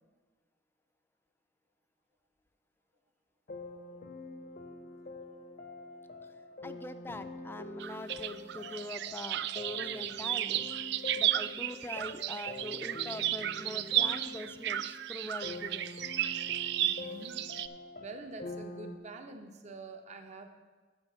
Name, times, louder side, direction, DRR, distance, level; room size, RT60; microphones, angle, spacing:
sound 1, 3.5-19.0, left 2 dB, 50° left, 0.7 m, -46 dB
voice 1, 6.6-10.6 11.1-15.9, left 2 dB, 10° left, 10 dB, 0.4 m, -43 dB
sound 2, 7.8-17.7, right 12 dB, 60° right, 0.3 m, -33 dB
voice 2, 16.8-17.4 18.0-20.5, right 3 dB, 40° right, 6 dB, 0.8 m, -46 dB
9.7 x 5.0 x 7.4 m, 1.4 s
head